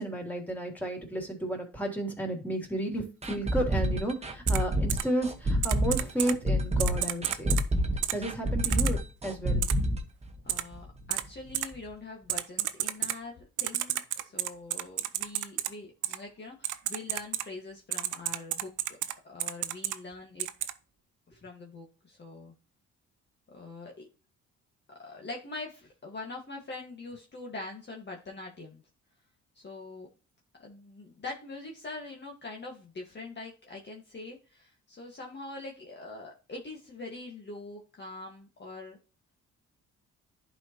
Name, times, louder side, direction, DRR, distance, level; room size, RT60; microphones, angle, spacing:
voice 1, 0.0-7.5 8.1-9.6, right 1 dB, 5° left, 1 dB, 3.3 m, -32 dB
sound 1, 3.2-11.0 11.2-11.3 11.7-11.8, equal, 20° right, 1.4 m, -28 dB
Typing, 4.5-4.6 4.9-5.0 5.6-6.3 6.8-7.6 8.0-8.1 8.6-8.9 9.6-9.7 10.5-10.6 11.1-11.2 11.5-11.7 12.3-13.2 13.6-15.7 16.0-16.2 16.6-17.4 17.9-19.1 19.4-20.0 20.4-20.7, right 13 dB, 80° right, 0.7 m, -30 dB
voice 2, 10.4-19.0 19.2-20.5 21.3-22.5 23.5-24.1 24.9-28.8 29.6-30.1 30.6-39.0, left 3 dB, 35° left, 0 dB, 1.8 m, -43 dB
11.0 x 4.7 x 3.0 m, 0.34 s
cardioid pair, 90°, 30 cm